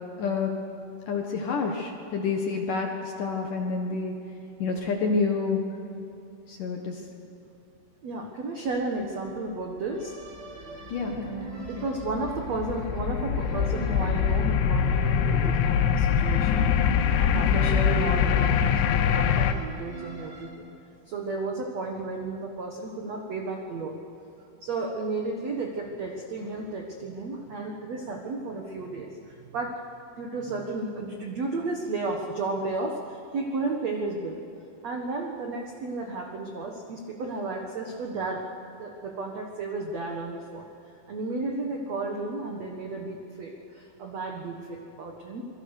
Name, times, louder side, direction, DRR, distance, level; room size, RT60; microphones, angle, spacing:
voice 1, 0.2-0.5 1.1-4.1 4.6-5.6 6.5-7.0 10.9-11.8, left 4 dB, 65° left, 2 dB, 2.2 m, -28 dB
voice 2, 8.0-10.2 11.7-16.7 17.2-20.7 21.1-24.0 24.6-29.8 30.2-34.4 34.8-38.5 38.7-40.7 41.1-45.4, right 3 dB, 85° right, 2 dB, 1.5 m, -33 dB
sound 1, 9.9-20.5, right 2 dB, 30° right, 3.4 m, -43 dB
sound 2, 11.1-19.5, left 8 dB, 80° left, 3.4 m, -24 dB
26.5 x 23.0 x 6.6 m, 2.9 s
omnidirectional pair, 5.7 m